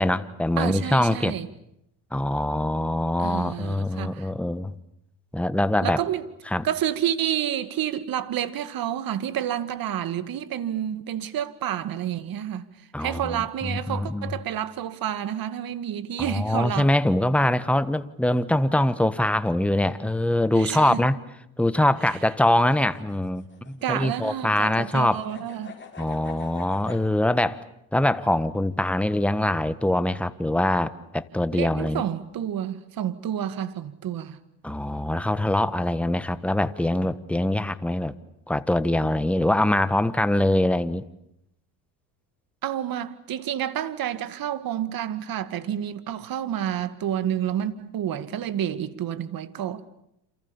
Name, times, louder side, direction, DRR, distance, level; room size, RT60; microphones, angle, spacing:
voice 1, 0.0-1.4 2.1-4.7 5.3-6.0 6.5-6.7 12.9-14.3 16.2-21.2 21.6-25.2 26.0-27.6 27.9-32.0 34.6-38.1 38.5-41.0, left 1 dB, 5° left, 1.4 m, -23 dB
voice 2, 0.6-1.5 3.2-4.3 5.8-6.2 6.6-12.7 13.0-16.9 20.5-21.0 23.8-25.8 31.5-34.4 42.6-49.8, right 10 dB, 50° right, 2.2 m, -29 dB
sound 1, 22.3-27.0, left 5 dB, 25° left, 6.4 m, -46 dB
28.5 x 28.0 x 7.3 m
supercardioid pair, 95°, 44 cm